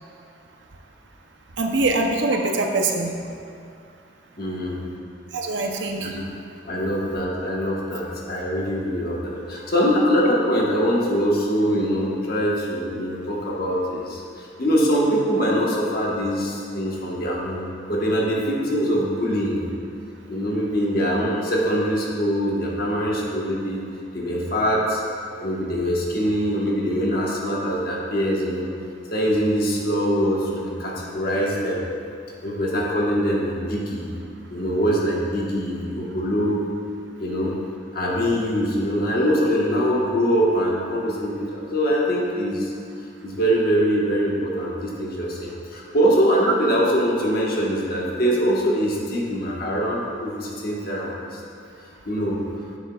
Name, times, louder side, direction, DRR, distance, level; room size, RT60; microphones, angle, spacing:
voice 1, 1.6-3.1 5.3-6.2, right 2 dB, 70° right, 2 dB, 0.7 m, -23 dB
voice 2, 4.4-4.9 6.0-6.2 6.6-19.6 20.3-23.8 24.1-25.0 25.4-28.7 29.1-31.8 32.4-34.1 34.5-36.7 37.2-37.6 37.9-42.7 43.2-51.4 52.0-52.4, equal, 50° left, -3 dB, 1.3 m, -23 dB
9.9 x 7.1 x 2.3 m, 2.4 s
head